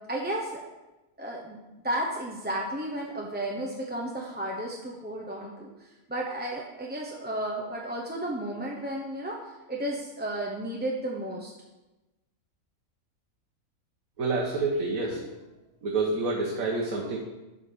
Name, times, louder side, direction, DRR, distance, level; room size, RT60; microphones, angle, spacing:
voice 1, 0.1-0.6 1.2-1.6 1.8-11.5, right 1 dB, 10° right, -2 dB, 0.7 m, -33 dB
voice 2, 14.2-15.3 15.8-17.2, right 3 dB, 70° right, -1 dB, 1.6 m, -28 dB
11.0 x 4.0 x 6.8 m, 1.1 s
omnidirectional pair, 1.5 m